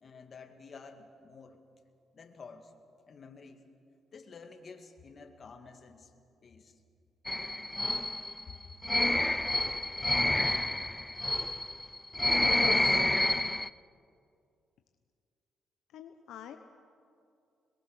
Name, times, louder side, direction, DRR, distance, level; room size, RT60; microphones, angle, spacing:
voice 1, 0.0-1.6 2.1-2.7 3.1-3.6 4.1-6.1 6.4-6.8 8.5-8.6, left 4 dB, 45° left, 6 dB, 2.2 m, -50 dB
sound 1, 7.3-13.7, left 1 dB, 10° left, 0.5 m, -29 dB
voice 2, 12.4-13.0 15.9-16.6, left 9 dB, 80° left, 7 dB, 0.9 m, -45 dB
22.0 x 21.5 x 6.7 m, 2.4 s
cardioid pair, 90°, 0 cm